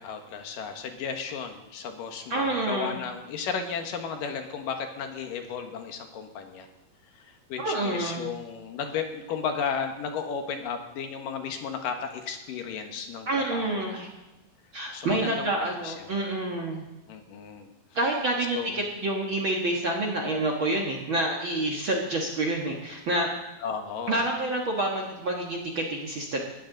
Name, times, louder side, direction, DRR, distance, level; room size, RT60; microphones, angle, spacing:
voice 1, 0.0-6.7 7.2-13.9 14.9-16.2 17.1-17.7 18.5-18.8 23.6-24.3, left 6 dB, 70° left, 5 dB, 2.9 m, -34 dB
voice 2, 2.3-3.0 7.6-8.3 13.3-14.1 14.7-16.9 17.9-23.3 24.1-26.4, right 2 dB, 50° right, 0 dB, 1.7 m, -28 dB
19.5 x 14.0 x 3.9 m, 1.0 s
omnidirectional pair, 4.1 m